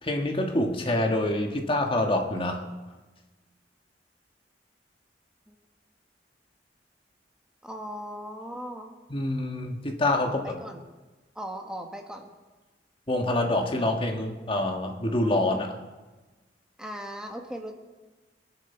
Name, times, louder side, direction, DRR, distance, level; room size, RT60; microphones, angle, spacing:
voice 1, 0.0-2.6 9.1-10.6 13.1-15.7, left 1 dB, 30° left, 3 dB, 1.7 m, -26 dB
voice 2, 7.6-8.9 10.3-10.8 11.3-12.3 16.8-17.7, equal, 5° right, 3 dB, 1.5 m, -38 dB
23.0 x 11.0 x 4.5 m, 1.2 s
head